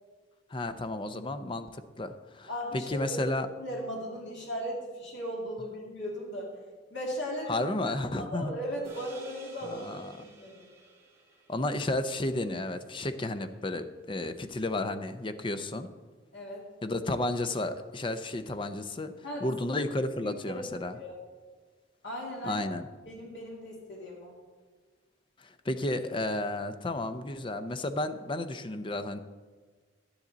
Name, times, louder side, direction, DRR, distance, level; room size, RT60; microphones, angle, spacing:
voice 1, 0.5-2.5 2.7-3.5 7.5-8.5 9.6-10.3 11.5-15.9 16.8-19.1 19.4-21.0 22.4-22.8 25.4-29.2, left 2 dB, 25° left, 10 dB, 0.5 m, -32 dB
voice 2, 2.5-3.2 3.6-6.6 6.9-9.9 10.2-10.7 16.3-16.6 19.2-19.5 20.2-20.7 20.9-21.2 22.0-22.6 23.1-24.4, equal, 70° left, -3 dB, 2.5 m, -37 dB
sound 1, 8.8-13.4, right 2 dB, 15° right, 1.7 m, -53 dB
11.5 x 10.0 x 4.0 m, 1.4 s
head